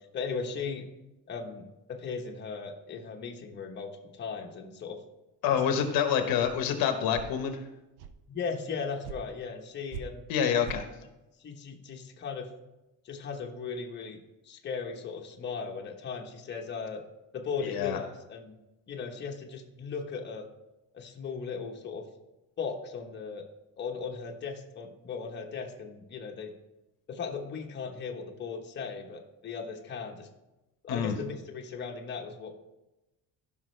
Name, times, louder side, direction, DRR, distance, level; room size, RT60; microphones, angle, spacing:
voice 1, 0.1-0.9 1.3-5.0 5.5-5.8 8.3-10.3 11.4-12.5 13.0-17.0 17.3-18.5 18.9-20.5 20.9-22.0 22.6-23.4 23.8-26.5 27.1-30.3 30.8-32.5, left 5 dB, 30° left, 1 dB, 1.1 m, -37 dB
voice 2, 5.4-7.6 10.3-10.8 17.6-18.0 30.9-31.2, left 8 dB, 65° left, 7 dB, 1.1 m, -27 dB
sound 1, 6.4-6.5 7.1-7.3 8.0-8.2 9.0-9.2 9.9-10.0 10.6-10.8, right 9 dB, 90° right, 0.8 m, -41 dB
15.0 x 5.8 x 3.3 m, 0.98 s
cardioid pair, 155°, 37 cm